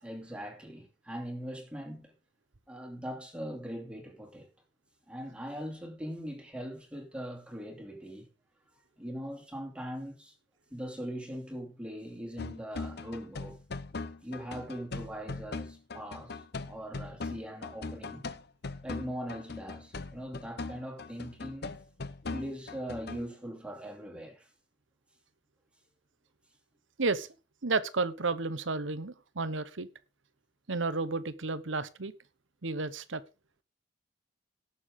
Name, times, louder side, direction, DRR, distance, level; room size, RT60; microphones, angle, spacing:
voice 1, 0.0-2.1 2.7-4.5 5.1-8.3 9.0-10.3 10.7-13.6 14.2-18.2 18.8-21.8 22.3-24.5, equal, 5° right, 2.7 m, -41 dB
sound 1, 12.4-23.3, left 3 dB, 60° left, 0.9 m, -40 dB
voice 2, 27.6-29.9 30.7-32.1 32.6-33.2, right 3 dB, 90° right, 1.1 m, -32 dB
18.0 x 7.0 x 3.7 m
head